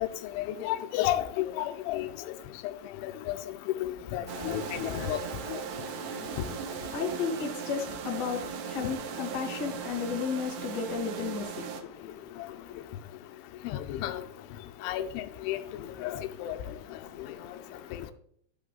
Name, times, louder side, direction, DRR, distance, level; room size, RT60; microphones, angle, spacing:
voice 1, 0.4-2.1 3.0-3.4 3.8-5.2 13.7-14.2 14.8-15.6 16.0-16.6, left 13 dB, 90° left, 3.0 m, -32 dB
sound 1, 4.3-11.8, right 7 dB, 75° right, 2.7 m, -38 dB
voice 2, 5.9-6.4 6.8-12.8 15.5-18.1, left 6 dB, 55° left, 1.1 m, -36 dB
12.0 x 6.2 x 3.8 m
omnidirectional pair, 5.4 m